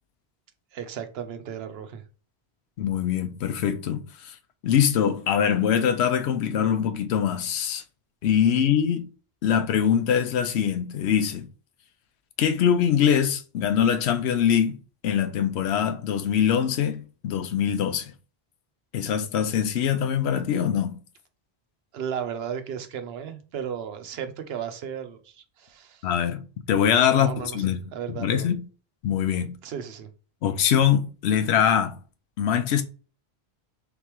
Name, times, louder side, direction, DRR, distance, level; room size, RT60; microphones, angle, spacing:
voice 1, 0.7-2.0 8.5-8.7 21.9-26.0 27.1-27.6 27.9-28.5 29.6-30.1, right 8 dB, 75° right, 0.9 m, -35 dB
voice 2, 2.8-4.3 4.6-7.8 8.2-9.1 9.4-11.5 12.4-14.8 15.0-18.1 18.9-21.0 26.0-28.6 29.0-29.6 30.4-32.0 32.4-32.8, left 8 dB, 85° left, 0.8 m, -23 dB
3.9 x 3.4 x 2.9 m
omnidirectional pair, 1.1 m